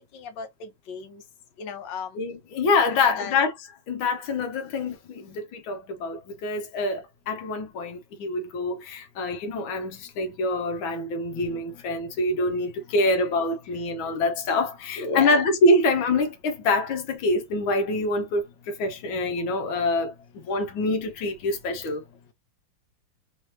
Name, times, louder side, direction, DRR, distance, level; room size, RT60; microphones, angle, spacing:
voice 1, 0.1-1.2 1.6-2.2 2.8-3.3 11.3-11.8 15.0-15.4, left 5 dB, 70° left, 1.6 m, -35 dB
voice 2, 2.1-3.5 3.9-20.1 20.4-22.0, left 2 dB, 85° left, 1.7 m, -25 dB
3.8 x 3.1 x 2.8 m
omnidirectional pair, 2.1 m